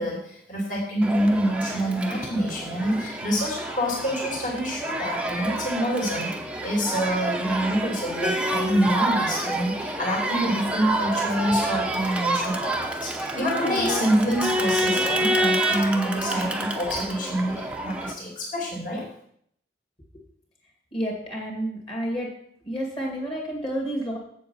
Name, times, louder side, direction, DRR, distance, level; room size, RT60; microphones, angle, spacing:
voice 1, 0.0-19.0, equal, 45° left, -3 dB, 2.7 m, -26 dB
Crowd, 1.0-18.1, right 1 dB, 5° right, 0.7 m, -28 dB
voice 2, 20.9-22.3 22.6-24.2, right 1 dB, 30° left, -1 dB, 2.2 m, -30 dB
7.8 x 7.5 x 5.5 m, 0.68 s
head